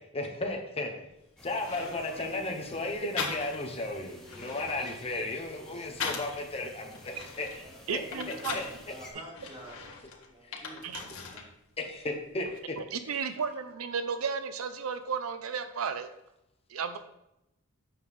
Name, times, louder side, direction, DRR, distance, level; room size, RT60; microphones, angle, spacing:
voice 1, 0.1-1.1 1.4-7.5 7.9-8.0 8.5-8.6 10.4-10.6 11.8-12.5, left 2 dB, 30° left, 2 dB, 1.1 m, -34 dB
sound 1, 1.1-1.2 1.6-2.3 3.2-3.8 4.1-6.4 6.9-8.8 9.3-11.5 11.8-12.6, left 5 dB, 80° left, 1.5 m, -40 dB
sound 2, 1.4-9.1, left 1 dB, 5° left, 1.3 m, -51 dB
voice 2, 1.7-2.8 4.0-4.7 7.6-11.5, right 1 dB, 25° right, -3 dB, 2.2 m, -49 dB
voice 3, 7.9-8.6 10.8-11.0 12.9-16.1 16.7-17.0, right 6 dB, 80° right, 10 dB, 0.6 m, -33 dB
8.7 x 6.5 x 3.6 m, 0.86 s
head